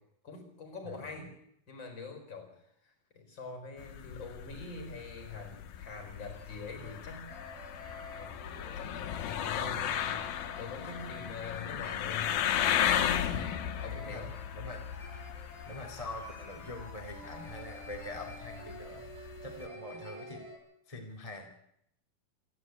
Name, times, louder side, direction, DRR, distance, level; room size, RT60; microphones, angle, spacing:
voice 1, 0.2-1.3 1.7-2.5 2.8-7.3 7.8-8.4 8.7-10.2 10.6-12.4 13.8-14.3, left 4 dB, 30° left, 6 dB, 5.0 m, -44 dB
voice 2, 0.8-1.2 14.1-14.2 14.5-14.8 15.6-19.0 19.4-20.5 20.9-21.5, left 1 dB, 15° left, 2 dB, 1.7 m, -44 dB
sound 1, 3.8-19.7, left 10 dB, 90° left, 3.2 m, -35 dB
sound 2, 5.9-6.0 6.3-6.4 6.8-6.9 7.3-20.6, left 1 dB, 20° right, 7.3 m, -49 dB
27.5 x 11.0 x 9.6 m, 0.75 s
omnidirectional pair, 4.1 m